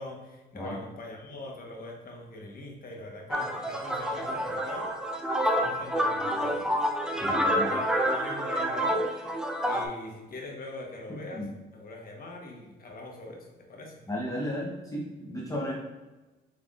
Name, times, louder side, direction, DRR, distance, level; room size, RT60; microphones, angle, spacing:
voice 1, 0.0-6.7 7.1-14.0, left 2 dB, 45° left, 0 dB, 1.1 m, -43 dB
sound 1, 3.3-9.9, equal, 5° right, 0.5 m, -28 dB
voice 2, 7.2-7.7 11.1-11.5 14.1-15.7, equal, 15° left, -5 dB, 0.8 m, -34 dB
5.4 x 3.5 x 2.4 m, 1.1 s
cardioid pair, 90°, 20 cm